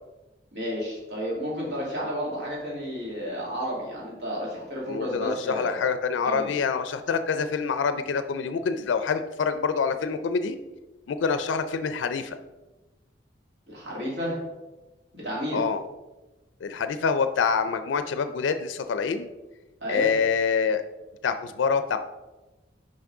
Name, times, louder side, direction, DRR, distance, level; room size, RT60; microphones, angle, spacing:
voice 1, 0.5-5.7 6.2-6.5 13.7-14.4 15.1-15.6 19.8-20.1, equal, 65° right, -5 dB, 2.3 m, -31 dB
voice 2, 4.9-10.6 11.1-12.4 15.5-15.8 16.6-19.3 19.9-20.8 21.2-22.0, left 5 dB, 90° left, 10 dB, 0.4 m, -26 dB
5.9 x 5.2 x 3.7 m, 1.1 s
head